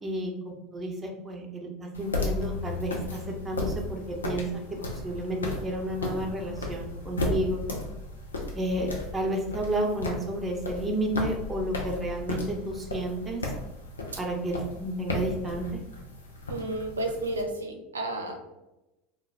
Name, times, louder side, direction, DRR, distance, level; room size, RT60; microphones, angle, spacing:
voice 1, 0.0-4.5 4.9-7.6 8.5-13.4 14.2-15.8, right 1 dB, 20° right, 1 dB, 0.7 m, -31 dB
sound 1, 1.9-17.4, left 2 dB, 85° left, 0.4 m, -35 dB
voice 2, 16.5-18.4, right 2 dB, 85° right, 4 dB, 0.4 m, -32 dB
2.3 x 2.2 x 3.2 m, 0.96 s
figure-of-eight pair, 75°, 0 cm